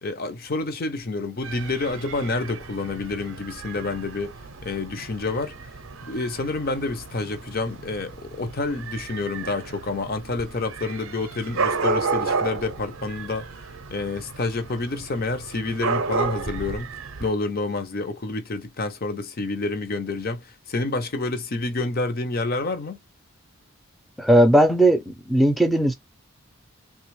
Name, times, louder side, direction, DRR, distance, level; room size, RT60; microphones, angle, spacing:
voice 1, 0.0-4.4 4.6-5.5 6.0-13.5 13.9-16.9 17.2-23.0, left 3 dB, 45° left, 0.6 m, -28 dB
Dog / Cat, 1.4-17.3, right 4 dB, 60° right, 0.5 m, -32 dB
voice 2, 24.2-25.9, right 1 dB, ahead, 0.5 m, -17 dB
3.3 x 2.3 x 3.0 m
head